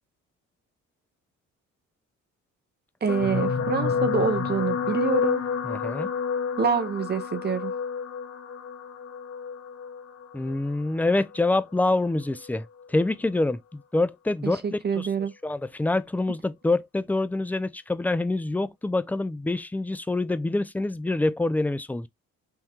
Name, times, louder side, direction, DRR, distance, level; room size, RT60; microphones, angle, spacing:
voice 1, 3.0-5.4 6.6-7.7 14.4-15.3, right 6 dB, 35° right, 0.7 m, -26 dB
sound 1, 3.1-11.5 12.3-12.5 12.8-12.9, left 6 dB, 50° left, 1.0 m, -29 dB
voice 2, 5.6-6.1 10.3-15.1 15.4-22.1, left 2 dB, 5° left, 0.4 m, -26 dB
3.6 x 2.2 x 4.3 m
cardioid pair, 90°, 30 cm